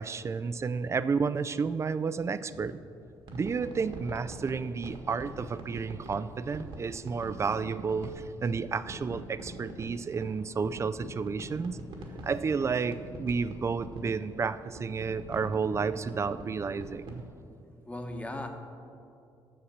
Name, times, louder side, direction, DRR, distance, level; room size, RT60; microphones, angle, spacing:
voice 1, 0.0-2.8 3.3-11.8 12.2-17.2, right 5 dB, 30° right, 14 dB, 0.4 m, -31 dB
voice 2, 2.5-2.8 6.7-6.8 11.4-12.3 17.5-18.5, left 1 dB, 15° left, 4 dB, 1.1 m, -42 dB
sound 1, 3.0-17.2, right 1 dB, 65° right, 1.7 m, -44 dB
8.7 x 6.5 x 7.2 m, 2.5 s
cardioid pair, 95°, 10 cm